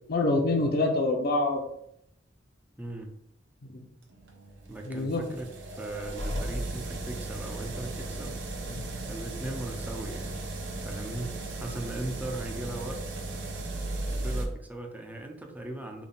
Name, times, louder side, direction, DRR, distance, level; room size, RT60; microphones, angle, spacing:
voice 1, 0.1-1.6 3.7-3.8 4.8-5.2 8.7-8.9, left 2 dB, 55° left, 1 dB, 0.6 m, -26 dB
voice 2, 2.8-3.1 4.7-8.4 9.1-10.4 10.8-11.3 11.6-13.0 14.1-16.1, right 2 dB, 10° right, 3 dB, 0.4 m, -38 dB
sound 1, 4.1-14.4, right 2 dB, 70° right, 0.7 m, -36 dB
3.5 x 2.3 x 3.9 m, 0.72 s
head